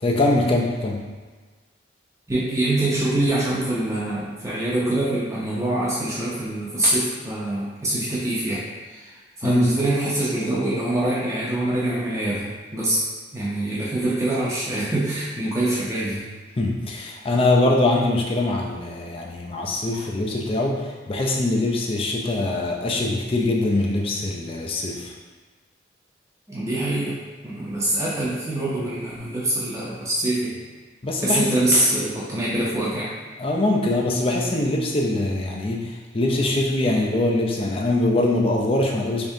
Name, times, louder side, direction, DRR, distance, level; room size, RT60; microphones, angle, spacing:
voice 1, 0.0-1.1 9.4-9.7 16.6-25.1 31.0-31.5 33.4-39.3, left 2 dB, 30° left, 0 dB, 0.4 m, -23 dB
voice 2, 2.3-13.0 13.3-16.3 19.9-20.0 26.5-30.6 31.2-33.1, right 1 dB, 15° right, -7 dB, 0.6 m, -24 dB
3.5 x 3.5 x 2.7 m, 1.4 s
head